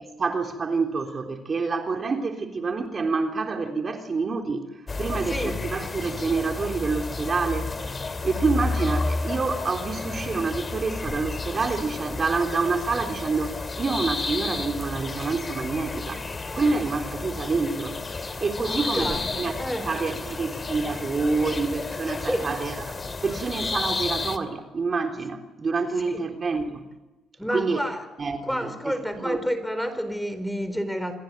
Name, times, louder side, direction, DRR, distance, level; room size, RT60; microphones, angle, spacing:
voice 1, 0.2-4.7 5.0-7.7 8.0-16.3 16.5-18.0 18.4-19.5 19.9-26.9 27.5-27.9 28.2-29.4, right 4 dB, 40° right, 5 dB, 3.5 m, -27 dB
sound 1, 4.9-24.4, left 3 dB, 30° left, 2.7 m, -31 dB
voice 2, 5.2-5.6 18.6-19.3 19.6-19.9 22.2-22.5 26.1-26.2 27.4-28.0 28.4-31.2, equal, ahead, 10 dB, 4.4 m, -29 dB
28.0 x 21.5 x 9.2 m, 1.1 s
cardioid pair, 90°, 0 cm